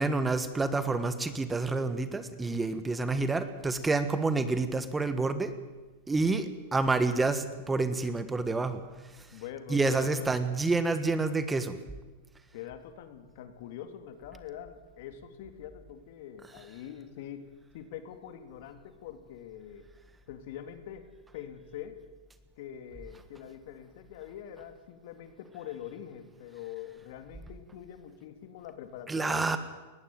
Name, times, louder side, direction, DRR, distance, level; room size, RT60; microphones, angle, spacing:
voice 1, 0.0-5.5 6.1-8.8 9.7-11.8 29.1-29.6, right 3 dB, 10° right, 11 dB, 1.4 m, -28 dB
voice 2, 9.3-10.3 12.5-19.9 20.3-22.0 22.6-29.6, left 10 dB, 65° left, 9 dB, 2.5 m, -44 dB
19.5 x 15.5 x 9.2 m, 1.2 s
hypercardioid pair, 125°, 0 cm